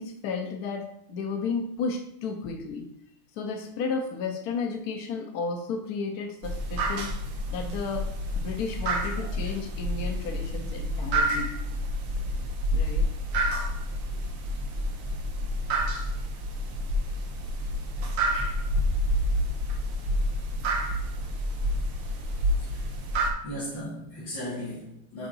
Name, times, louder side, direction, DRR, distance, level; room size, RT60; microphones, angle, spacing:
voice 1, 0.0-2.9 3.4-7.2 7.5-11.7 12.7-13.1 13.4-13.6, left 4 dB, 80° left, 5 dB, 0.8 m, -33 dB
sound 1, 6.4-23.3, equal, 80° right, 1.8 m, -29 dB
voice 2, 22.6-23.1 23.4-25.3, equal, 65° left, -9 dB, 2.4 m, -37 dB
6.8 x 4.5 x 3.9 m, 0.71 s
omnidirectional pair, 2.3 m